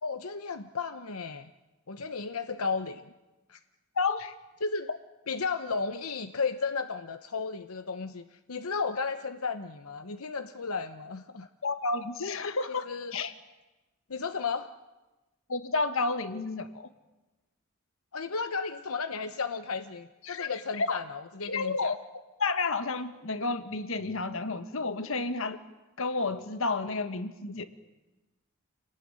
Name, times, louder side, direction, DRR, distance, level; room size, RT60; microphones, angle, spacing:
voice 1, 0.0-1.5 1.9-3.0 3.5-3.6 4.6-4.9 5.3-11.5 12.4-13.1 14.1-14.7 18.1-22.0, left 4 dB, 85° left, 9 dB, 1.0 m, -34 dB
voice 2, 4.0-4.3 11.6-13.3 15.5-16.9 20.2-21.0 21.4-22.0 22.4-25.6 26.0-27.7, left 3 dB, 65° left, 10 dB, 1.6 m, -31 dB
28.5 x 19.0 x 9.9 m, 1.1 s
head